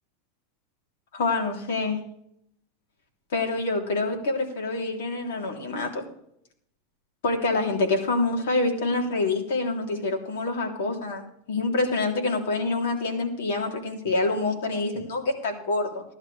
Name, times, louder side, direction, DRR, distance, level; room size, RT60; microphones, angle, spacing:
voice 1, 1.1-2.0 3.3-6.0 7.2-16.0, left 3 dB, 80° left, 2 dB, 3.1 m, -26 dB
17.0 x 11.5 x 3.4 m, 0.72 s
supercardioid pair, 155°, 0 cm